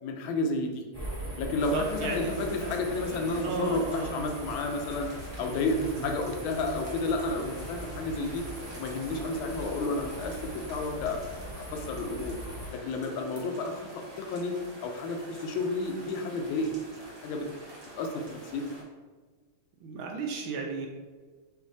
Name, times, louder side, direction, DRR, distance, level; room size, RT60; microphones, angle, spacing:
voice 1, 0.0-0.8 1.4-5.1 5.4-8.4 8.8-11.2 11.6-12.3 12.7-14.6 14.8-17.5 17.9-18.7 20.6-20.7, left 2 dB, 75° left, 3 dB, 1.3 m, -31 dB
sound 1, 0.9-12.7, right 1 dB, 15° right, 0.8 m, -41 dB
Speech synthesizer, 1.3-4.8, right 1 dB, 55° left, 0.9 m, -46 dB
sound 2, 1.6-18.8, right 1 dB, 50° right, 1.1 m, -47 dB
voice 2, 1.7-2.3 2.6-2.7 3.4-4.3 5.4-6.1 19.8-20.9, right 4 dB, 75° right, 1 dB, 1.2 m, -34 dB
6.4 x 2.5 x 2.7 m, 1.4 s
omnidirectional pair, 2.4 m